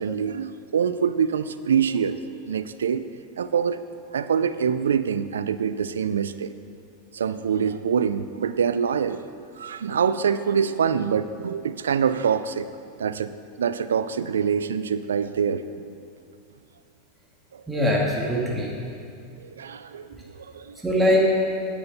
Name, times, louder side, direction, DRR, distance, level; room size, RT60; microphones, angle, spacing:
voice 1, 0.0-2.2 2.5-3.1 3.4-3.8 4.1-6.5 7.1-9.3 9.6-12.7 13.0-13.3 13.6-15.9 17.5-17.6 19.4-20.8, right 7 dB, 85° right, 13 dB, 0.4 m, -25 dB
voice 2, 17.7-18.7 20.8-21.2, left 1 dB, 10° right, -4 dB, 2.0 m, -22 dB
8.9 x 8.7 x 5.3 m, 2.4 s
hypercardioid pair, 100°, 0 cm